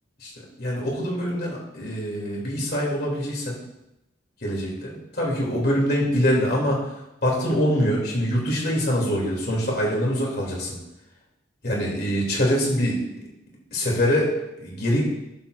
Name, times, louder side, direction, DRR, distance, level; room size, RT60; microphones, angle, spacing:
voice 1, 0.6-3.6 4.4-6.9 7.2-10.8 11.6-13.0 13.7-15.0, equal, 55° left, -2 dB, 2.8 m, -24 dB
11.5 x 7.3 x 2.6 m, 0.89 s
head